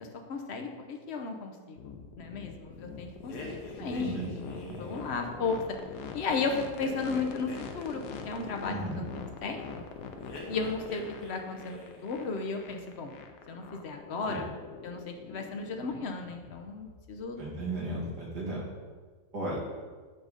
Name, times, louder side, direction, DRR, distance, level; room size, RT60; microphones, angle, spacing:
voice 1, 0.3-1.8 2.2-5.8 6.1-9.1 9.4-9.8 10.5-13.1 13.5-14.5 14.8-17.4, left 4 dB, 55° left, 4 dB, 0.8 m, -35 dB
sound 1, 1.8-18.3, left 5 dB, 90° left, 1.3 m, -44 dB
sound 2, 3.3-5.1 6.8-8.6 10.2-11.4 11.6-12.1, left 2 dB, 70° left, 1.7 m, -45 dB
voice 2, 3.8-4.3 4.7-4.8 8.7-9.0 14.3-14.5 17.4-18.6 19.3-19.6, right 2 dB, 75° right, -5 dB, 2.4 m, -35 dB
8.2 x 3.8 x 5.0 m, 1.5 s
omnidirectional pair, 1.8 m